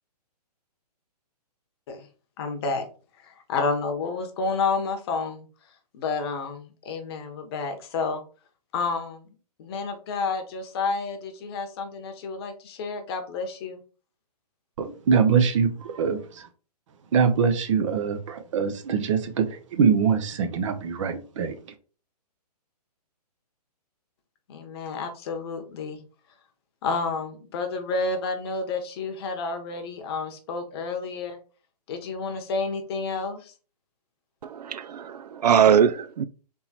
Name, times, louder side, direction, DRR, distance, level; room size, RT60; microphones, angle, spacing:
voice 1, 2.4-2.8 3.2-5.5 5.9-8.2 8.7-9.3 9.6-13.8 24.5-26.0 26.8-31.4 31.9-33.5, left 4 dB, 40° left, 0.9 m, -30 dB
voice 2, 14.8-16.2 17.1-21.5, right 6 dB, 50° right, 0.8 m, -23 dB
voice 3, 34.5-36.2, right 8 dB, 80° right, 0.4 m, -21 dB
3.6 x 2.9 x 4.2 m
hypercardioid pair, 140°, 21 cm